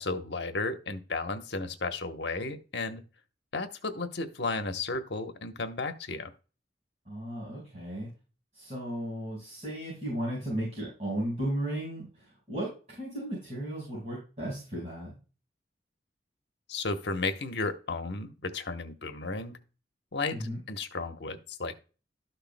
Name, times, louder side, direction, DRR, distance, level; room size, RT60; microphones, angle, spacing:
voice 1, 0.0-3.0 3.5-6.3 16.7-19.6 20.1-21.9, left 3 dB, 85° left, 6 dB, 1.1 m, -34 dB
voice 2, 7.0-8.1 8.5-15.1 20.3-20.6, right 1 dB, 40° right, -5 dB, 5.0 m, -35 dB
12.5 x 6.7 x 2.2 m, 0.34 s
head